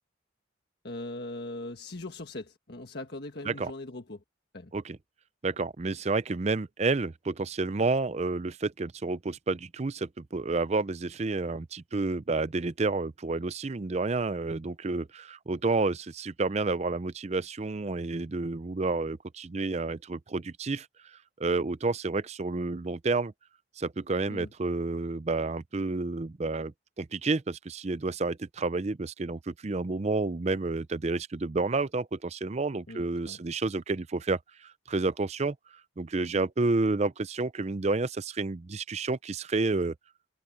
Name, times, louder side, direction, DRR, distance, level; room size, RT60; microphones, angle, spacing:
voice 1, 0.8-4.2 4.5-4.7 24.3-24.5 32.9-33.4, left 2 dB, 55° left, 1.6 m, -40 dB
voice 2, 5.4-20.9 21.4-23.3 23.8-26.7 27.0-35.6 36.0-39.9, right 3 dB, 35° right, 0.5 m, -30 dB
head